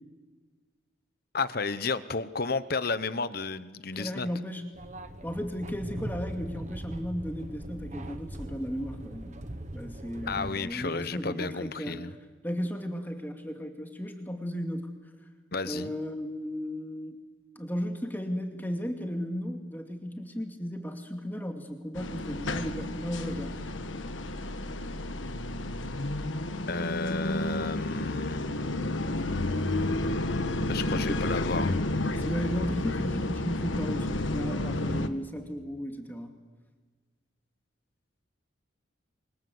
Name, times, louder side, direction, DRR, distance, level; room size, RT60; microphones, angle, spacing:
voice 1, 1.3-4.3 10.3-12.1 15.5-15.9 26.7-28.4 30.7-31.7, left 4 dB, 50° left, 14 dB, 1.0 m, -32 dB
voice 2, 4.0-4.6 5.2-9.4 9.7-11.9 12.4-14.9 15.6-17.2 17.6-23.5 30.9-31.2 32.2-36.3, equal, 10° left, 4 dB, 2.4 m, -35 dB
sound 1, 4.7-10.5, right 1 dB, 35° right, 1.3 m, -40 dB
sound 2, 22.0-35.1, left 2 dB, 75° left, 1.4 m, -31 dB
28.5 x 24.5 x 7.9 m, 1.4 s
head